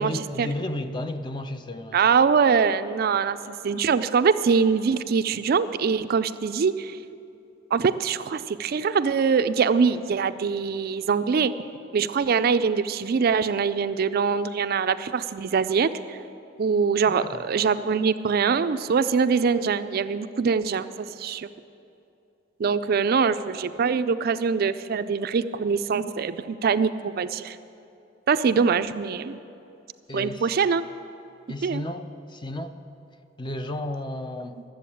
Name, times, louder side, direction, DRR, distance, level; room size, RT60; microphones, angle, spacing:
voice 1, 0.0-2.0 17.1-17.5 30.1-30.5 31.5-32.8 33.4-34.6, left 1 dB, 25° left, 9 dB, 0.5 m, -33 dB
voice 2, 1.9-7.0 7.7-11.5 11.9-16.2 16.6-21.5 22.6-27.6 28.3-29.4 30.1-30.9 31.6-31.8, right 5 dB, 50° right, 12 dB, 0.4 m, -23 dB
12.5 x 7.6 x 8.4 m, 2.7 s
head